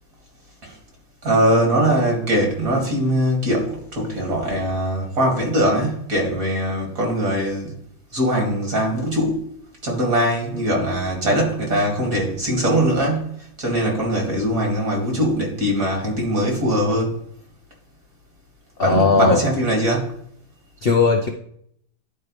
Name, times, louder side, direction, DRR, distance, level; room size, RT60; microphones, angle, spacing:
voice 1, 1.2-7.8 8.1-9.4 9.8-17.2 18.8-20.1, right 1 dB, 45° right, 0 dB, 2.9 m, -21 dB
voice 2, 18.8-19.4 20.8-21.3, left 4 dB, 55° left, 2 dB, 0.6 m, -17 dB
11.5 x 4.8 x 3.3 m, 0.66 s
omnidirectional pair, 2.2 m